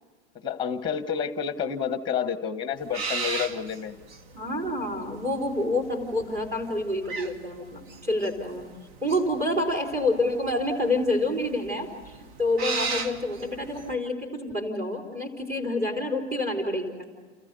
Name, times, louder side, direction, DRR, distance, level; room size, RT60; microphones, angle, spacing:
voice 1, 0.4-4.0, left 7 dB, 15° left, 11 dB, 1.2 m, -29 dB
sound 1, 2.8-13.9, right 4 dB, 60° right, 1.7 m, -36 dB
voice 2, 4.3-8.6 9.0-11.9 12.4-17.1, left 1 dB, 25° right, -2 dB, 4.6 m, -28 dB
29.5 x 14.5 x 6.9 m, 1.4 s
supercardioid pair, 135°, 34 cm